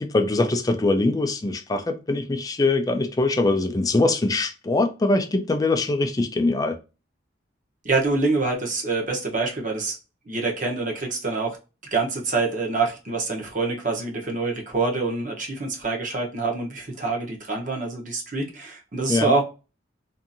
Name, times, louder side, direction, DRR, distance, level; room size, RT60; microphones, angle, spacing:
voice 1, 0.0-6.8 19.1-19.3, left 2 dB, 20° left, 0.3 m, -22 dB
voice 2, 7.8-10.0 10.3-11.6 11.9-19.4, right 3 dB, 45° right, 0.8 m, -26 dB
2.7 x 2.4 x 2.5 m
head